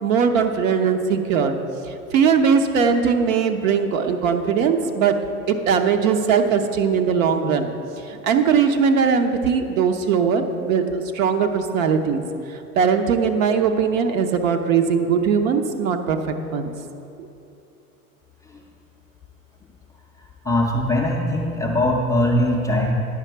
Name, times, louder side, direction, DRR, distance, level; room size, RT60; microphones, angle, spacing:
voice 1, 0.0-1.6 1.9-5.1 5.5-7.7 8.1-12.2 12.8-16.7, right 6 dB, 60° right, 6 dB, 0.9 m, -20 dB
voice 2, 20.4-22.9, left 1 dB, 10° left, -3 dB, 0.4 m, -21 dB
9.8 x 5.7 x 4.5 m, 2.7 s
hypercardioid pair, 100°, 45 cm